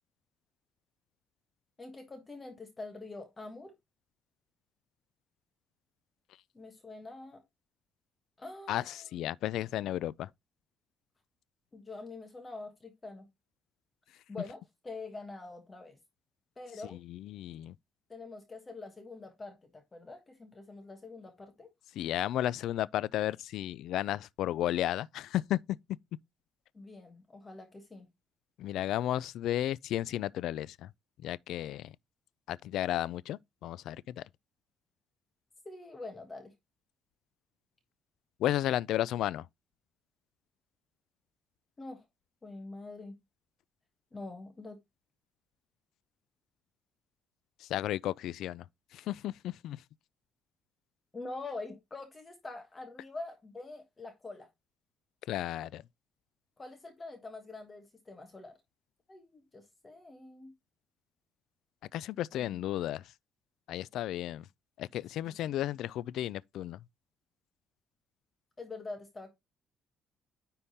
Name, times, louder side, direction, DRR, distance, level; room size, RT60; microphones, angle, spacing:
voice 1, 1.8-3.7 6.5-7.4 8.4-9.0 11.7-13.3 14.3-16.0 16.6-17.0 18.1-21.7 26.7-28.1 35.6-36.5 41.8-42.0 42.4-43.1 44.1-44.8 51.1-54.5 56.6-58.6 59.1-60.5 62.3-62.6 65.2-65.3 68.6-69.3, left 3 dB, 20° left, 1.3 m, -45 dB
voice 2, 8.7-10.3 16.9-17.7 21.9-25.6 28.6-30.9 31.2-31.9 32.5-34.2 38.4-39.5 47.6-48.6 48.9-49.8 55.3-55.8 61.9-63.1 63.7-64.4 64.8-66.8, left 13 dB, 70° left, 0.3 m, -33 dB
9.8 x 3.7 x 4.1 m
cardioid pair, 170°, 0 cm